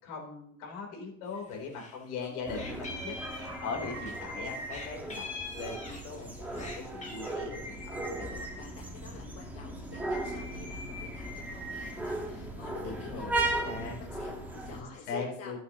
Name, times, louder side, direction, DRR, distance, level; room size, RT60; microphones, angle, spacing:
voice 1, 0.0-5.3 5.5-8.4 12.8-13.3 13.7-14.0 14.7-15.6, left 4 dB, 65° left, 0 dB, 3.9 m, -40 dB
Meow, 1.4-2.0 2.2-4.2 4.7-6.2 6.5-7.3, left 3 dB, 20° left, 2.0 m, -43 dB
voice 2, 2.2-2.6 2.9-3.1 3.4-3.6 8.2-15.6, left 6 dB, 40° left, 0 dB, 1.5 m, -48 dB
sound 1, 2.4-14.8, right 2 dB, 5° right, 1.6 m, -37 dB
12.5 x 8.7 x 3.1 m, 0.67 s
supercardioid pair, 125°, 38 cm